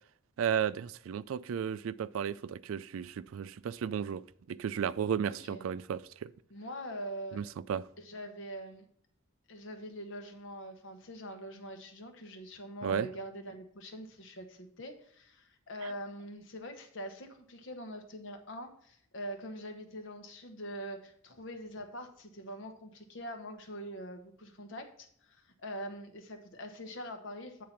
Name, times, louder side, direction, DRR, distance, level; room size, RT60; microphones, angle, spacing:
voice 1, 0.4-4.2 4.5-6.3 7.3-7.4 7.7-7.8 12.8-13.1 15.8-15.9, right 8 dB, 75° right, 0.3 m, -34 dB
voice 2, 5.3-5.7 6.5-7.4 8.0-8.8 9.5-27.6, equal, 60° left, 1.1 m, -44 dB
8.5 x 3.7 x 5.8 m
head